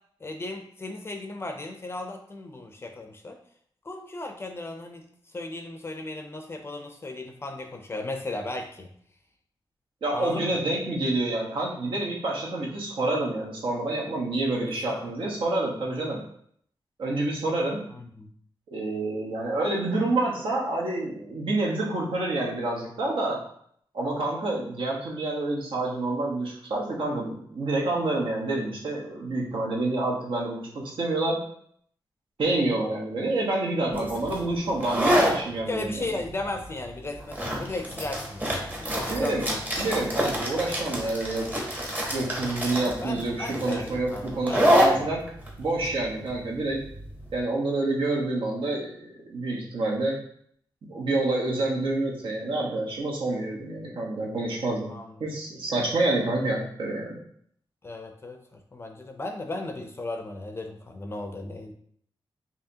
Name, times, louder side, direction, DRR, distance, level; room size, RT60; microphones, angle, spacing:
voice 1, 0.2-3.4 3.8-8.9 10.1-10.6 14.5-15.1 17.9-18.3 35.7-39.6 42.8-45.1 54.9-55.3 57.8-61.7, left 2 dB, 30° left, 4 dB, 0.4 m, -36 dB
voice 2, 10.0-16.2 17.0-17.8 18.7-23.4 23.9-31.4 32.4-36.0 39.1-39.5 39.8-41.5 42.1-45.2 45.6-46.8 47.3-50.1 50.9-54.9 55.2-57.2, right 2 dB, 80° right, -3 dB, 1.1 m, -28 dB
sound 1, 33.9-47.3, equal, 20° right, 0.9 m, -27 dB
4.8 x 2.8 x 2.8 m, 0.65 s
wide cardioid pair, 145°, 9 cm